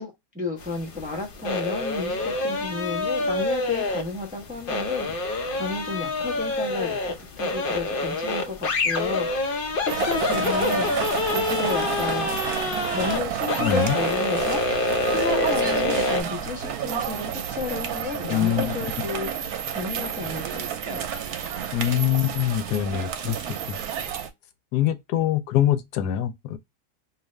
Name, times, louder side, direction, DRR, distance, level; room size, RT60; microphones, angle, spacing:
voice 1, 0.0-9.5 9.8-12.5 12.9-14.6 15.1-21.1, left 3 dB, 10° right, 0.5 m, -32 dB
sound 1, 0.6-16.2, left 3 dB, 60° left, 0.5 m, -26 dB
sound 2, 9.9-24.3, right 8 dB, 75° right, 1.1 m, -30 dB
voice 2, 13.6-14.0 18.3-18.8 21.7-23.4 23.7-23.8 24.7-26.6, left 11 dB, 85° left, 1.1 m, -24 dB
2.7 x 2.5 x 3.1 m
omnidirectional pair, 1.7 m